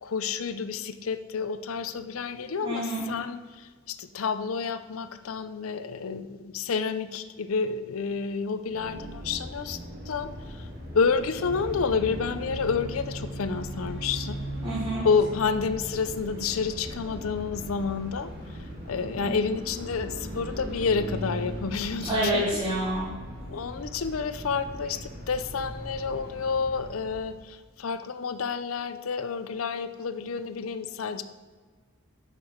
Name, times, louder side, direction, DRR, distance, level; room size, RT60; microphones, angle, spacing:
voice 1, 0.0-9.8 10.1-10.7 10.9-14.4 15.0-18.6 18.9-22.4 23.5-31.2, left 5 dB, 85° left, 11 dB, 0.5 m, -29 dB
voice 2, 2.6-3.1 14.6-15.1 19.2-19.3 22.0-23.1, right 1 dB, 25° right, -9 dB, 2.0 m, -28 dB
sound 1, 8.6-27.4, equal, 50° right, 2.6 m, -40 dB
sound 2, 11.4-16.7, right 1 dB, 70° right, 2.4 m, -39 dB
9.6 x 6.8 x 4.5 m, 1.5 s
head